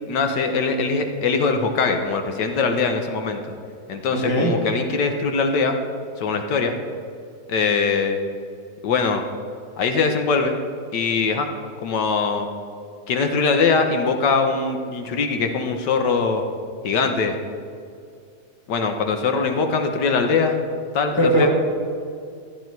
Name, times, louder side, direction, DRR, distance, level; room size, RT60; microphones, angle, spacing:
voice 1, 0.1-3.4 3.9-5.8 6.2-6.7 7.5-8.2 8.8-9.2 9.8-10.5 10.9-11.5 11.8-12.5 13.1-16.4 16.8-17.4 18.7-20.6 20.9-21.5, left 4 dB, 80° left, 5 dB, 1.5 m, -22 dB
voice 2, 4.1-4.5 21.2-21.5, right 1 dB, 15° left, -2 dB, 2.0 m, -19 dB
13.5 x 11.5 x 4.6 m, 2.3 s
omnidirectional pair, 1.9 m